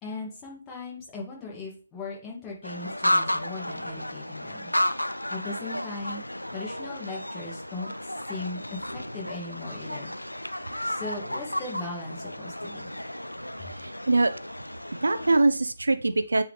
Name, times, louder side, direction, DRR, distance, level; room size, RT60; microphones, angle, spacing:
voice 1, 0.0-4.7 5.0-6.2 6.5-7.9 8.3-10.1 10.8-12.9 13.6-13.7, left 3 dB, 15° left, -1 dB, 2.3 m, -38 dB
sound 1, 2.6-15.4, left 1 dB, 85° left, 0.5 m, -32 dB
voice 2, 13.8-14.3 15.0-16.4, right 2 dB, 70° right, 12 dB, 0.5 m, -23 dB
9.2 x 4.0 x 3.4 m, 0.38 s
figure-of-eight pair, 145°, 0 cm